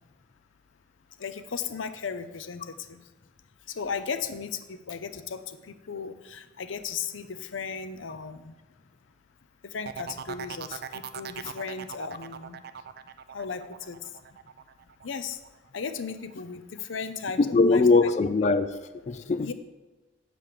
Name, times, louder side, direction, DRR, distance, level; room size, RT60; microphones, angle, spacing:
voice 1, 1.2-3.0 3.7-8.5 9.6-12.6 13.3-14.0 15.0-15.4 15.7-18.1 19.4-19.5, left 6 dB, 90° left, 10 dB, 0.7 m, -36 dB
sound 1, 9.9-15.5 15.9-16.3, right 8 dB, 55° right, 0.4 m, -40 dB
voice 2, 17.4-19.5, left 3 dB, 35° left, 10 dB, 0.3 m, -22 dB
8.3 x 7.6 x 5.0 m, 1.1 s
head